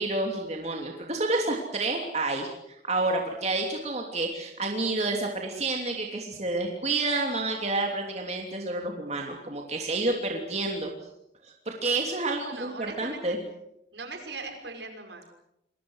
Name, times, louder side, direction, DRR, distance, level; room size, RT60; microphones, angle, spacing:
voice 1, 0.0-2.5 2.8-10.9 11.4-13.4, right 2 dB, 35° right, 1 dB, 3.1 m, -29 dB
voice 2, 12.3-13.4 13.9-15.2, right 3 dB, 70° right, 5 dB, 5.5 m, -40 dB
28.0 x 23.0 x 6.5 m, 0.80 s
head